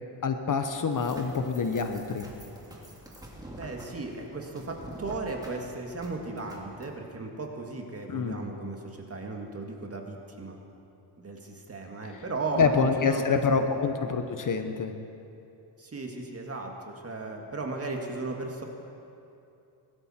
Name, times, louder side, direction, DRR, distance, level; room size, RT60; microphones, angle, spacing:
voice 1, 0.2-2.3 8.1-8.4 12.1-12.2 12.6-14.9, left 5 dB, 45° left, 7 dB, 1.0 m, -26 dB
sound 1, 0.9-6.9, right 1 dB, 10° right, 2.3 m, -47 dB
voice 2, 3.6-10.6 11.2-13.7 15.8-18.6, right 3 dB, 30° right, 2 dB, 1.9 m, -36 dB
21.0 x 12.5 x 4.4 m, 2.8 s
cardioid pair, 110°, 45 cm